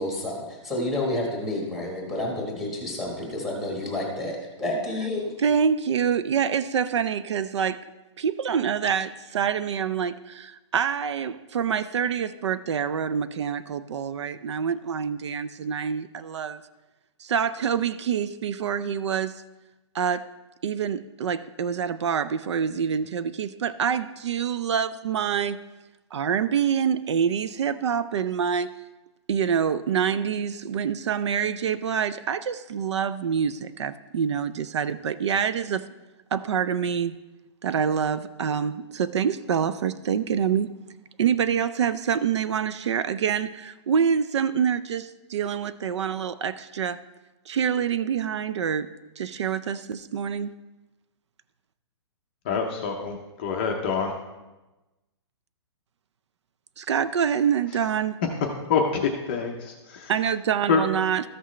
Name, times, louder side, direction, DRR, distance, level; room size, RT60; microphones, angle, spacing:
voice 1, 0.0-5.3, left 1 dB, ahead, -1 dB, 1.2 m, -29 dB
voice 2, 5.4-7.8 8.2-16.6 17.2-19.3 19.9-20.3 20.6-25.6 26.1-28.7 29.3-35.9 36.3-37.2 37.6-40.7 41.2-47.0 47.5-48.9 49.2-50.6 56.8-58.2 60.1-61.2, right 7 dB, 70° right, 13 dB, 0.4 m, -26 dB
voice 3, 52.5-53.2 53.4-54.1 58.7-60.1 60.7-60.8, left 6 dB, 20° left, 2 dB, 0.5 m, -25 dB
13.5 x 6.0 x 3.1 m, 1.1 s
hypercardioid pair, 175°, 15 cm